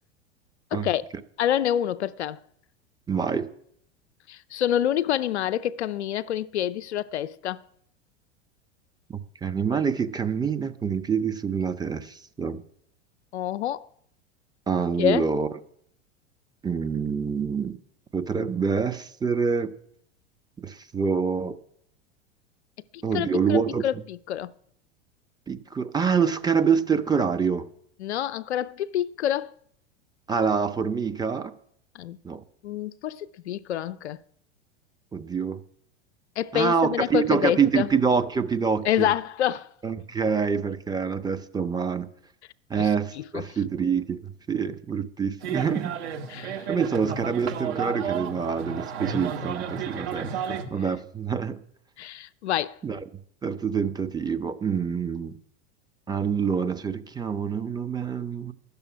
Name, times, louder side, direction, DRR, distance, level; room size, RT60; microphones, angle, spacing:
voice 1, 0.7-1.0 1.4-2.4 4.3-7.6 13.3-13.9 15.0-15.3 22.9-24.5 28.0-29.5 31.9-32.2 32.6-34.2 36.4-37.9 38.8-39.7 42.8-42.9 43.2-43.4 46.3-46.7 52.0-52.8, left 11 dB, 75° left, 0.6 m, -27 dB
voice 2, 3.1-3.5 9.1-12.6 14.7-15.5 16.6-17.8 18.1-19.7 20.6-21.6 23.0-23.8 25.5-27.7 30.3-31.5 32.2-32.4 35.1-35.6 36.5-39.1 39.8-42.1 42.7-45.9 46.7-51.6 52.8-53.0 53.4-55.4 56.1-58.5, right 6 dB, 10° right, 0.6 m, -26 dB
sound 1, 45.4-50.6, right 7 dB, 65° right, 1.6 m, -32 dB
10.5 x 6.9 x 9.2 m
figure-of-eight pair, 85°, 34 cm